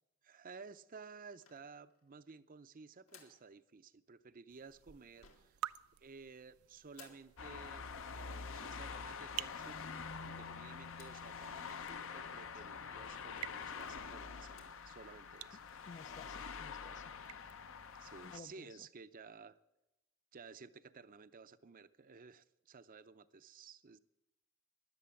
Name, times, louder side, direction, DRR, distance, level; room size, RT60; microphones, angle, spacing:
voice 1, 0.2-5.6 6.0-7.9 8.1-9.8 10.2-15.6 18.0-19.6 20.3-24.0, right 4 dB, 40° right, 0.6 m, -55 dB
sound 1, 1.4-2.2 3.1-3.5 5.2-5.6 6.9-7.3 9.4-9.7 10.9-11.3 11.8-11.9 12.1-12.2 13.0-13.1 13.5-13.6 13.8-14.2 14.5-14.8, left 6 dB, 80° left, 2.7 m, -62 dB
sound 2, 4.5-18.3, right 12 dB, 85° right, 0.4 m, -52 dB
sound 3, 7.4-18.4, left 5 dB, 65° left, 0.8 m, -46 dB
voice 2, 15.9-17.1 18.2-18.9, left 4 dB, 35° left, 0.4 m, -55 dB
16.0 x 11.0 x 7.1 m
head